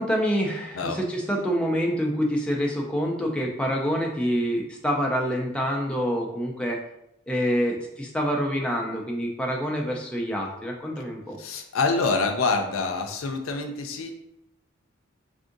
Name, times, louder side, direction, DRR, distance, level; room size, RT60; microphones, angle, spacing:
voice 1, 0.0-6.8 7.3-11.4, equal, 5° left, -1 dB, 0.3 m, -26 dB
voice 2, 11.4-14.1, left 3 dB, 85° left, 5 dB, 0.4 m, -26 dB
3.5 x 2.5 x 2.6 m, 0.80 s
head